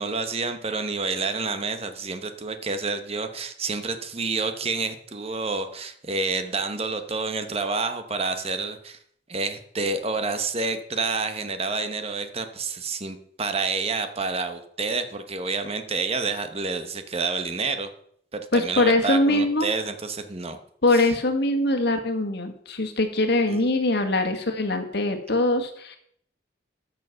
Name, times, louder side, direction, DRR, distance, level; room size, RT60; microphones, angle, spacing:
voice 1, 0.0-9.0 9.3-17.9 18.3-20.6 20.9-21.1 23.5-23.6, right 4 dB, 35° right, 8 dB, 1.0 m, -29 dB
voice 2, 18.5-19.7 20.8-26.0, left 2 dB, 60° left, 6 dB, 1.6 m, -22 dB
13.0 x 6.7 x 5.8 m, 0.65 s
head